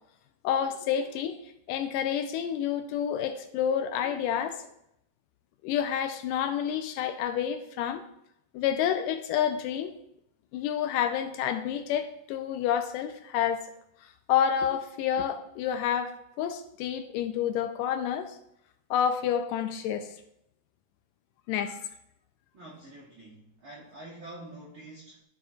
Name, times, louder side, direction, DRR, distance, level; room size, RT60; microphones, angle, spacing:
voice 1, 0.4-4.7 5.6-8.0 8.5-9.9 10.5-13.6 14.3-18.4 18.9-20.1 21.5-21.8, left 9 dB, 80° left, 8 dB, 2.1 m, -29 dB
voice 2, 22.5-25.2, right 1 dB, 70° right, -5 dB, 1.2 m, -46 dB
13.5 x 5.1 x 2.5 m, 0.77 s
omnidirectional pair, 4.0 m